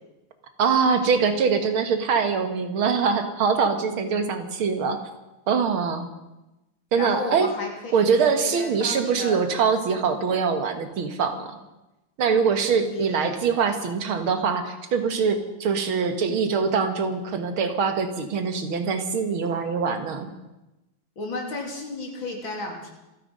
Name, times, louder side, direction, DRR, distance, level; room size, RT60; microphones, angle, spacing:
voice 1, 0.6-5.1 5.5-6.1 6.9-7.5 7.9-11.6 12.2-20.3, right 5 dB, 85° right, 7 dB, 2.3 m, -23 dB
voice 2, 6.9-9.4 12.8-13.7 21.2-22.9, left 2 dB, 70° left, 1 dB, 3.8 m, -33 dB
26.0 x 10.0 x 5.3 m, 0.99 s
omnidirectional pair, 2.2 m